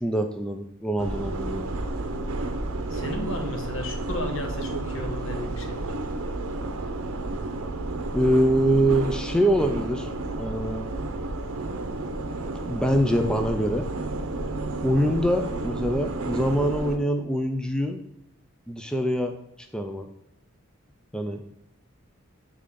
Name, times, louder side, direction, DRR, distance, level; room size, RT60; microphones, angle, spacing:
voice 1, 0.0-1.7 8.1-10.1 10.4-10.9 12.7-13.9 14.8-18.0 18.7-19.3 19.7-20.1 21.1-21.4, equal, 5° left, 6 dB, 0.3 m, -24 dB
sound 1, 1.0-17.0, right 2 dB, 85° right, 0.7 m, -31 dB
voice 2, 2.9-5.9, left 1 dB, 70° left, 4 dB, 1.1 m, -34 dB
8.4 x 3.7 x 3.6 m, 0.83 s
head